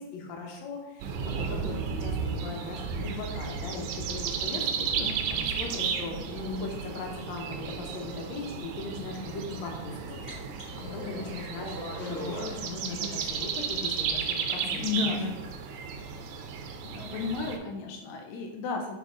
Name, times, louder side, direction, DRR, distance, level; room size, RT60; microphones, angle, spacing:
voice 1, 0.0-4.7 5.3-14.8, left 3 dB, 65° left, 1 dB, 1.9 m, -39 dB
sound 1, 1.0-17.6, right 6 dB, 80° right, 1.8 m, -34 dB
voice 2, 4.8-5.2 10.8-11.4 14.6-15.4 16.8-19.0, left 4 dB, 85° left, 3 dB, 1.6 m, -34 dB
sound 2, 9.5-9.6 9.8-12.7, equal, 20° left, 1.6 m, -40 dB
6.1 x 4.1 x 3.7 m, 1.0 s
omnidirectional pair, 4.0 m